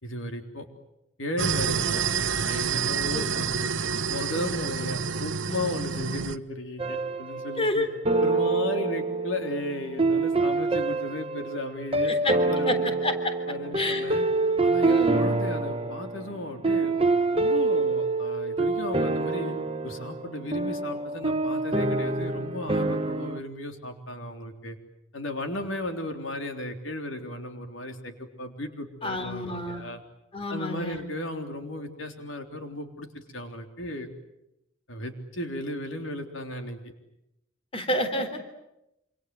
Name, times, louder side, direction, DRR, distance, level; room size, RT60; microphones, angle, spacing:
voice 1, 0.0-0.7 1.2-2.0 2.4-3.7 4.1-7.9 8.2-13.0 13.5-14.3 14.6-16.9 17.3-19.6 19.8-24.8 25.1-30.0 30.5-33.1 33.3-34.1 34.9-36.8, left 1 dB, 85° left, 5 dB, 3.6 m, -35 dB
sound 1, 1.4-6.4, right 6 dB, 70° right, 1.0 m, -28 dB
sound 2, 6.8-7.7 8.1-23.4, right 3 dB, 30° right, 1.1 m, -26 dB
voice 2, 7.6-7.9 12.0-12.4 12.7-13.3 13.8-14.1 14.8-15.2 29.0-29.8 30.3-31.0 37.7-38.4, left 1 dB, 30° left, 7 dB, 3.5 m, -29 dB
27.5 x 27.0 x 7.8 m, 0.86 s
head